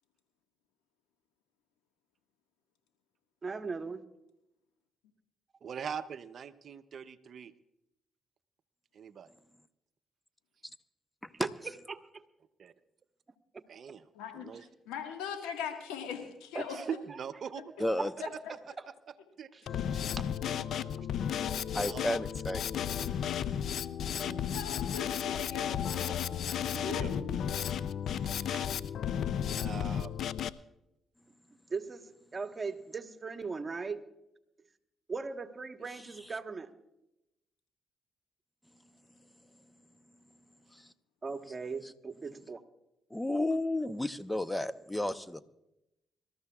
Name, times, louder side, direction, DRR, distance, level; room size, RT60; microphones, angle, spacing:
voice 1, 3.4-4.0 11.4-12.2 16.5-16.9 18.2-18.3 18.8-18.9 19.5-20.8 31.7-34.0 35.1-36.7 41.2-42.6, right 4 dB, 35° right, 7 dB, 1.3 m, -39 dB
voice 2, 5.6-7.5 8.9-9.3 12.6-12.7 13.7-14.0 14.3-14.7 16.7-17.6 19.4-19.5 20.8-21.1 21.8-22.0 23.5-23.6 24.2-24.4 26.6-27.4 28.2-28.7 29.6-30.4, right 7 dB, 60° right, 12 dB, 0.6 m, -42 dB
voice 3, 14.1-14.5 14.8-16.8 24.5-26.2 26.8-27.2 28.2-28.4, left 7 dB, 85° left, 4 dB, 1.6 m, -40 dB
voice 4, 17.8-18.1 21.7-22.6 40.7-40.9 43.1-45.4, left 1 dB, 10° left, 13 dB, 0.8 m, -32 dB
Drum kit, 19.7-30.5, left 9 dB, 70° left, 0.4 m, -33 dB
25.5 x 13.5 x 2.4 m, 0.90 s
hypercardioid pair, 50°, 0 cm